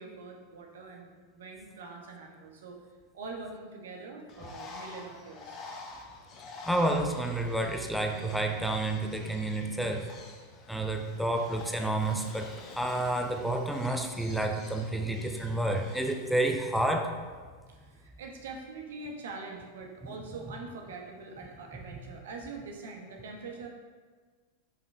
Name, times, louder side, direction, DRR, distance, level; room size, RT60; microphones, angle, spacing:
voice 1, 0.0-2.8 3.1-5.6 17.7-23.7, right 3 dB, 60° right, 1 dB, 1.0 m, -44 dB
Bird, 4.3-16.3, left 3 dB, 30° left, 0.9 m, -48 dB
voice 2, 6.7-10.1 10.7-17.1, right 1 dB, ahead, 3 dB, 0.6 m, -30 dB
6.1 x 5.2 x 3.4 m, 1.5 s
figure-of-eight pair, 90°, 0 cm